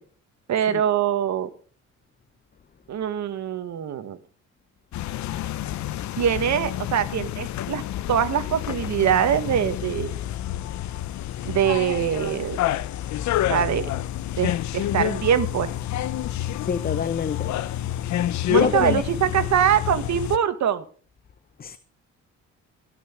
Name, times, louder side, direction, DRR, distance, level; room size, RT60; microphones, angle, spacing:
voice 1, 0.5-1.5 2.9-4.2 6.2-7.8 8.1-10.2 11.4-12.6 13.5-13.9 14.3-15.7 18.5-20.8, right 9 dB, 65° right, 1.6 m, -23 dB
sound 1, 4.9-20.4, left 12 dB, 70° left, 0.7 m, -28 dB
voice 2, 16.6-17.6 18.1-19.0 21.6-21.8, left 6 dB, 30° left, 0.7 m, -27 dB
17.5 x 6.0 x 7.2 m
cardioid pair, 90°, 30 cm